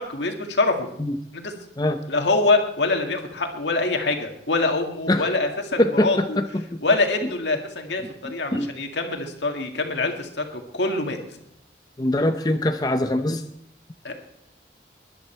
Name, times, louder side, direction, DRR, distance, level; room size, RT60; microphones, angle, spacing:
voice 1, 0.0-0.9 1.3-1.5 2.1-6.4 6.8-11.2 14.0-14.1, left 3 dB, 80° left, 4 dB, 2.0 m, -24 dB
voice 2, 5.8-6.8 8.2-8.7 12.0-13.4, left 1 dB, 20° left, 7 dB, 0.6 m, -23 dB
21.0 x 11.0 x 4.5 m, 0.74 s
head